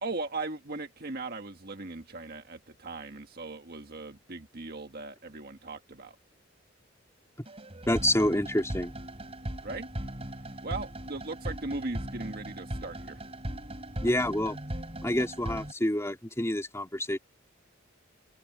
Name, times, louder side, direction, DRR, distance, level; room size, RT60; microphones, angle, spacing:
voice 1, 0.0-6.1 9.6-9.9 10.6-13.2, right 3 dB, 50° right, 1.7 m, -38 dB
sound 1, 7.5-15.7, right 1 dB, 30° right, 3.8 m, -38 dB
voice 2, 7.9-8.9 14.0-14.6 15.0-17.2, left 1 dB, 15° left, 2.9 m, -28 dB
open air
head